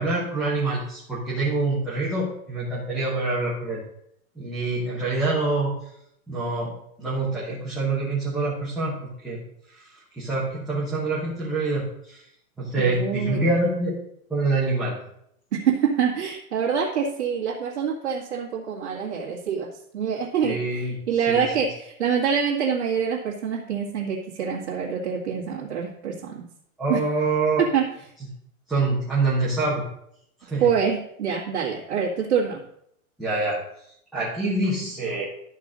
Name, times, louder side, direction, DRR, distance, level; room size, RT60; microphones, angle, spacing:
voice 1, 0.0-3.8 4.4-5.7 6.3-8.9 9.2-9.4 9.7-9.9 10.2-12.2 12.6-14.0 14.3-15.0 20.4-20.9 21.3-21.4 26.8-27.6 28.7-29.8 30.4-30.7 33.2-33.6 34.1-35.2, right 2 dB, ahead, -11 dB, 0.9 m, -25 dB
voice 2, 12.8-13.5 15.5-19.7 19.9-26.4 26.9-27.0 27.6-27.9 30.6-32.6, right 7 dB, 50° right, -5 dB, 2.0 m, -25 dB
12.0 x 4.2 x 6.2 m, 0.73 s
hypercardioid pair, 180°, 43 cm